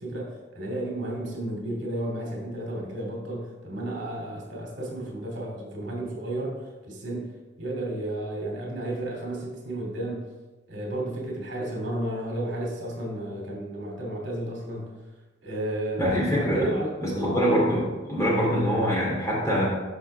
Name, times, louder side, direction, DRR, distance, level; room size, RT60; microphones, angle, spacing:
voice 1, 0.0-7.3 7.6-10.3 10.7-15.0 15.4-17.4, right 1 dB, 65° right, -2 dB, 2.7 m, -32 dB
voice 2, 16.0-16.7 17.0-19.7, equal, 15° left, -5 dB, 2.8 m, -24 dB
13.0 x 6.0 x 3.4 m, 1.2 s
head